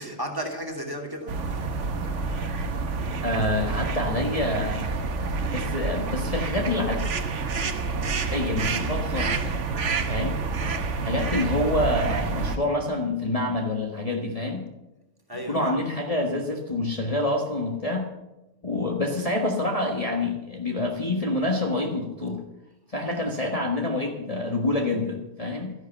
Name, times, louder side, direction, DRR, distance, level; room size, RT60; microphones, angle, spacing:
voice 1, 0.0-1.7 11.2-11.5 15.3-15.8, equal, 15° right, 3 dB, 2.5 m, -34 dB
sound 1, 1.3-12.6, right 4 dB, 60° right, 1.4 m, -28 dB
voice 2, 3.2-5.0 5.3-7.0 8.3-9.5 10.1-10.3 11.0-14.6 15.5-18.1 18.6-22.4 22.9-25.7, left 2 dB, 30° left, 0 dB, 1.5 m, -27 dB
13.0 x 11.0 x 7.1 m, 0.99 s
omnidirectional pair, 1.4 m